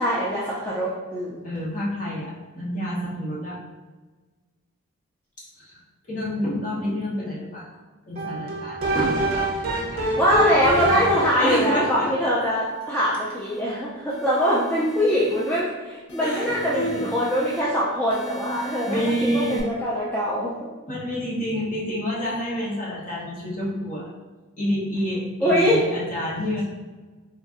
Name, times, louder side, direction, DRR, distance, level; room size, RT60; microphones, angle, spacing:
voice 1, 0.0-1.4 10.2-20.7 25.4-25.9, equal, 10° left, -7 dB, 0.4 m, -23 dB
voice 2, 1.4-3.6 5.7-5.8 6.1-7.7 8.1-9.6 9.9-10.0 11.4-12.1 16.2-17.1 18.8-19.7 20.9-24.1 24.6-26.6, equal, 35° left, -8 dB, 1.0 m, -28 dB
sound 1, 8.2-11.5, right 1 dB, 45° right, 0.6 m, -25 dB
sound 2, 12.5-13.6 14.1-15.6 16.1-17.6 18.1-19.6, right 2 dB, 85° left, 0.8 m, -38 dB
3.9 x 2.6 x 2.5 m, 1.3 s
head